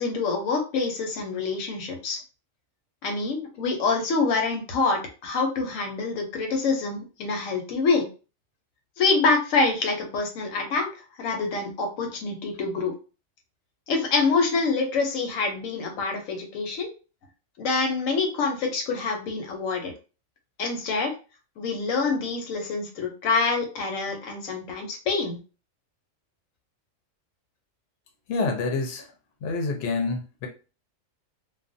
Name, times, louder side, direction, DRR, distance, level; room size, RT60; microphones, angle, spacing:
voice 1, 0.0-2.2 3.0-8.1 9.0-10.9 11.2-12.9 13.9-16.9 17.6-19.9 20.6-21.1 21.6-25.4, left 4 dB, 90° left, 1.1 m, -26 dB
voice 2, 28.3-29.1 29.4-30.5, left 3 dB, 60° left, 0.8 m, -27 dB
2.3 x 2.2 x 2.5 m
omnidirectional pair, 1.3 m